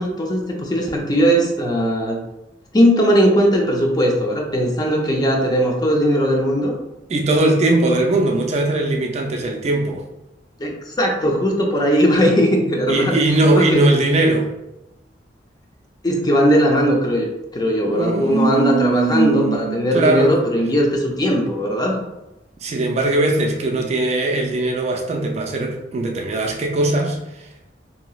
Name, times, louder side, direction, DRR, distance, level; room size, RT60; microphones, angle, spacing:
voice 1, 0.0-2.2 2.7-6.7 10.6-13.2 13.5-13.8 16.0-17.3 17.5-22.0, equal, 20° left, 0 dB, 0.5 m, -18 dB
voice 2, 7.1-10.0 12.9-14.5 17.8-20.3 22.6-27.5, right 2 dB, 40° right, 1 dB, 0.3 m, -20 dB
2.9 x 2.7 x 2.3 m, 0.93 s
head